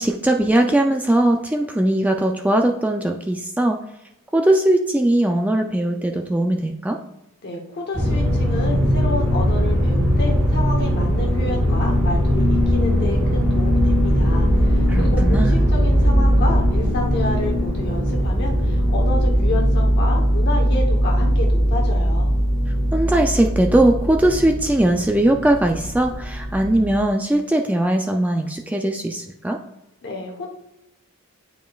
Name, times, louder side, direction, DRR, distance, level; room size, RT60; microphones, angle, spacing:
voice 1, 0.0-3.8 4.3-7.0 14.9-15.6 22.9-29.6, right 1 dB, 5° right, 3 dB, 0.3 m, -19 dB
voice 2, 7.4-22.3 30.0-30.5, left 2 dB, 50° left, 0 dB, 1.0 m, -29 dB
sound 1, 7.9-27.0, equal, 35° right, 1.6 m, -19 dB
8.9 x 5.0 x 2.3 m, 0.89 s
head